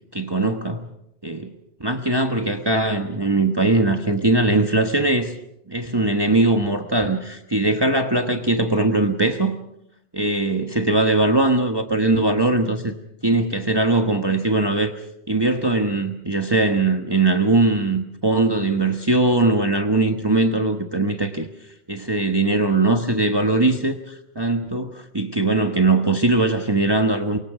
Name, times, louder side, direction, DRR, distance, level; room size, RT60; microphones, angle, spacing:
voice 1, 0.1-0.9 1.2-1.5 1.8-5.4 5.7-9.6 10.1-12.9 13.2-14.9 15.3-21.5 21.9-27.4, right 2 dB, 25° right, 5 dB, 1.3 m, -20 dB
28.0 x 24.5 x 5.0 m, 0.78 s
omnidirectional pair, 1.1 m